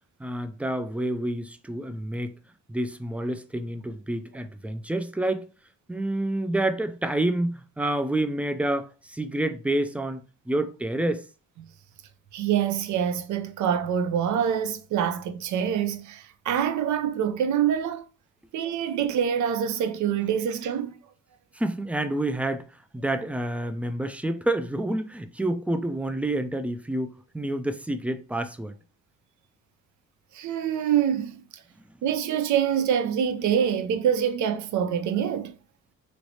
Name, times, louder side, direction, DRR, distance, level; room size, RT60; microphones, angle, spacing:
voice 1, 0.2-2.4 2.7-5.5 5.9-11.3 21.5-28.7, right 1 dB, 5° right, 0.3 m, -28 dB
voice 2, 12.3-18.0 18.5-20.9 30.3-31.4 32.0-35.5, right 9 dB, 70° right, 0.6 m, -25 dB
3.1 x 3.0 x 2.7 m
cardioid pair, 90°, 30 cm